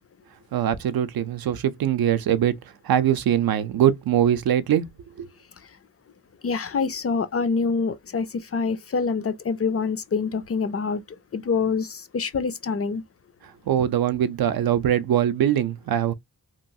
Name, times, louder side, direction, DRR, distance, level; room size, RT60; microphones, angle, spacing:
voice 1, 0.5-2.5 2.8-4.8 5.2-5.3 13.7-16.1, right 10 dB, 65° right, 0.5 m, -22 dB
voice 2, 6.4-13.0, left 5 dB, 40° left, 0.4 m, -26 dB
2.9 x 2.3 x 2.6 m
wide cardioid pair, 140°, 39 cm